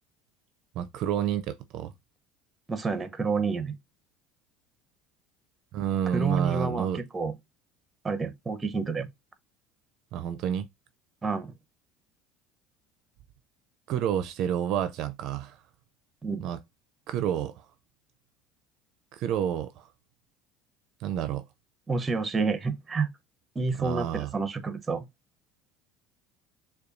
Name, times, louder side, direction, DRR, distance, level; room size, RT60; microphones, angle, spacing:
voice 1, 0.8-1.9 5.7-7.0 10.1-10.7 13.9-15.6 16.4-16.6 17.1-17.6 19.1-19.9 21.0-21.4 23.8-24.3, right 9 dB, 60° right, 0.4 m, -29 dB
voice 2, 2.7-3.7 6.1-7.3 8.0-9.1 11.2-11.5 16.2-16.4 21.9-23.1 23.5-25.1, right 4 dB, 20° right, 0.7 m, -29 dB
6.5 x 2.3 x 2.5 m
supercardioid pair, 90°, 0 cm